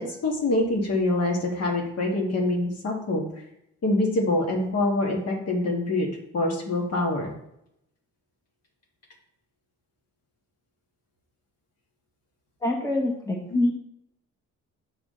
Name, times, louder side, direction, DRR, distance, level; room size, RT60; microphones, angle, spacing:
voice 1, 0.0-3.2 3.8-6.1 6.3-7.3, left 2 dB, 55° left, 0 dB, 1.8 m, -25 dB
voice 2, 12.6-13.7, left 1 dB, 10° left, 1 dB, 1.1 m, -25 dB
7.3 x 5.0 x 3.8 m, 0.78 s
cardioid pair, 90°, 30 cm